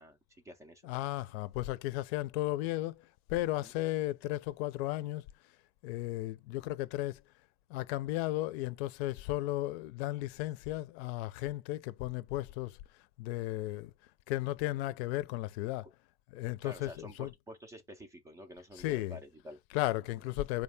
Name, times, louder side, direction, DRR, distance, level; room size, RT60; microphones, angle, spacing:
voice 1, 0.0-0.9 3.6-3.7 15.8-15.9 16.6-19.6 20.1-20.2, equal, 10° right, 0.3 m, -50 dB
voice 2, 0.8-5.2 5.8-7.2 7.7-12.8 13.2-13.9 14.3-15.9 16.3-17.3 18.8-19.2 19.7-20.6, left 16 dB, 80° left, 0.5 m, -35 dB
4.8 x 2.8 x 3.3 m
cardioid pair, 170°, 30 cm